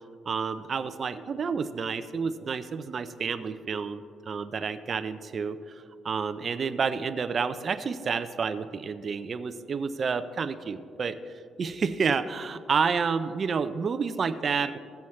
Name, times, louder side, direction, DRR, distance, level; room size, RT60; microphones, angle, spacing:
voice 1, 0.3-11.2 11.6-14.8, right 5 dB, 45° right, 10 dB, 0.5 m, -30 dB
17.5 x 7.1 x 3.2 m, 2.2 s
cardioid pair, 90°, 0 cm